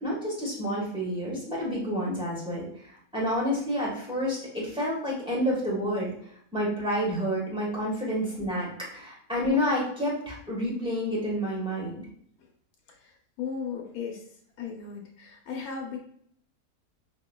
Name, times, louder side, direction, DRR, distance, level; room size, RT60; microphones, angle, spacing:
voice 1, 0.0-6.1 6.5-12.0, equal, 5° right, -5 dB, 1.1 m, -29 dB
voice 2, 12.9-14.2 14.6-16.0, left 6 dB, 80° left, 1 dB, 1.1 m, -36 dB
5.1 x 2.9 x 2.2 m, 0.65 s
omnidirectional pair, 1.6 m